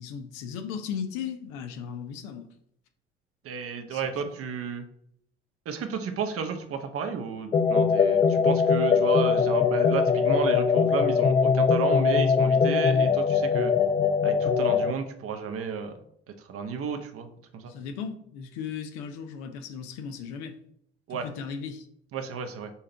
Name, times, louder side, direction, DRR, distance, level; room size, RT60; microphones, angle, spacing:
voice 1, 0.0-2.5 3.9-4.0 17.6-20.6 21.1-21.9, left 7 dB, 60° left, 7 dB, 0.8 m, -36 dB
voice 2, 3.4-4.8 5.6-13.7 14.2-15.9 16.5-17.7 21.1-21.3 22.1-22.7, right 6 dB, 45° right, 7 dB, 1.0 m, -32 dB
sound 1, 7.5-14.9, left 6 dB, 20° left, 0.3 m, -22 dB
5.7 x 3.7 x 4.4 m, 0.71 s
figure-of-eight pair, 50°, 32 cm